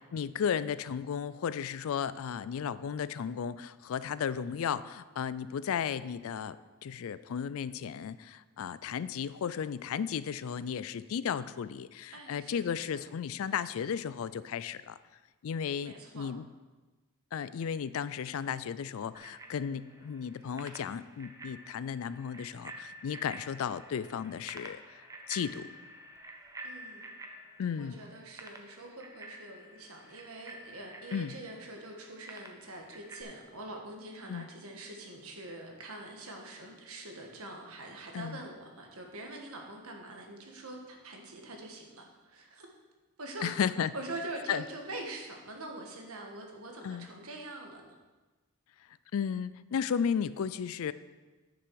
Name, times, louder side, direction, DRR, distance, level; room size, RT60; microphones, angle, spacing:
voice 1, 0.1-6.6 6.8-15.0 15.4-16.4 17.3-25.7 27.6-28.0 31.1-31.3 34.3-34.5 38.1-38.4 43.4-43.9 44.5-44.6 46.8-47.1 49.1-50.9, left 7 dB, 65° left, 16 dB, 0.4 m, -34 dB
voice 2, 12.1-13.1 15.8-16.3 26.6-27.1 27.8-42.7 43.2-43.5 43.9-47.9, right 2 dB, 75° right, 1 dB, 1.5 m, -44 dB
Bicycle bell, 19.1-33.2, right 1 dB, 15° right, 0.7 m, -49 dB
10.0 x 6.1 x 4.7 m, 1.2 s
head